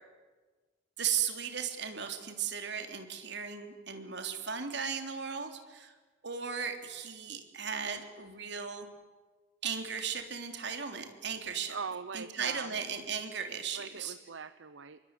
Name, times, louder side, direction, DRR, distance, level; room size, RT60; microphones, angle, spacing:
voice 1, 1.0-5.9 6.2-8.9 9.6-11.8 12.1-14.1, right 7 dB, 65° right, 6 dB, 3.4 m, -36 dB
voice 2, 11.7-12.7 13.7-15.0, right 5 dB, 85° right, 13 dB, 0.9 m, -41 dB
26.0 x 23.0 x 9.7 m, 1.3 s
head